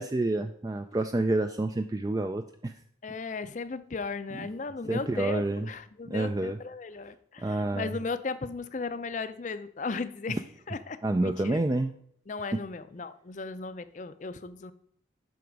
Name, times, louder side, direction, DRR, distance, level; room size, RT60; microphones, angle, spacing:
voice 1, 0.0-2.7 4.9-5.7 6.1-6.6 7.4-7.9 11.0-11.9, right 2 dB, 20° right, 7 dB, 0.3 m, -28 dB
voice 2, 3.0-11.6 12.3-14.7, left 4 dB, 40° left, 13 dB, 0.5 m, -36 dB
7.8 x 5.9 x 5.2 m, 0.66 s
head